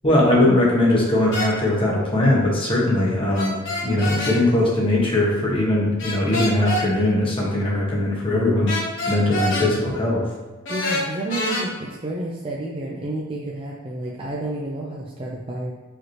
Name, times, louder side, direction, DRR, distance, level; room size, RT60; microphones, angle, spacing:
voice 1, 0.0-3.6 3.8-8.8 9.1-10.2, left 1 dB, 25° left, -4 dB, 1.1 m, -20 dB
sound 1, 1.3-1.5 3.3-4.4 6.0-6.8 8.7-9.7 10.6-11.6, left 1 dB, 65° left, 1.4 m, -26 dB
voice 2, 10.7-15.7, right 1 dB, 25° right, -4 dB, 0.5 m, -30 dB
5.0 x 2.9 x 3.1 m, 1.3 s
head